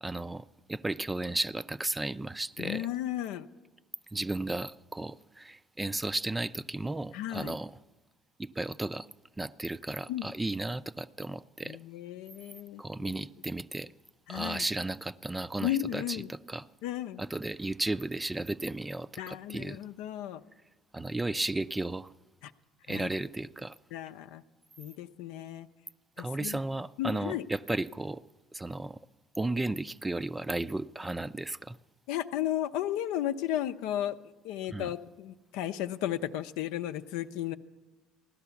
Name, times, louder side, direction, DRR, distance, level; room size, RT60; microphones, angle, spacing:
voice 1, 0.0-2.9 4.1-7.8 8.4-9.1 9.4-11.8 12.8-13.9 14.3-16.7 17.2-19.8 20.9-22.1 22.9-23.8 26.2-28.2 28.5-29.0 29.4-31.8 34.7-34.9, right 2 dB, 15° right, 0.4 m, -34 dB
voice 2, 2.6-3.5 7.1-7.5 10.1-10.3 11.6-12.8 13.1-13.2 14.3-14.6 15.6-16.3 16.8-17.2 19.2-20.4 22.4-22.5 22.9-23.1 23.9-24.4 24.8-25.7 26.2-26.6 27.0-27.4 32.1-34.2 34.4-37.5, left 12 dB, 75° left, 0.6 m, -34 dB
15.5 x 11.5 x 7.0 m
hypercardioid pair, 65°, 0 cm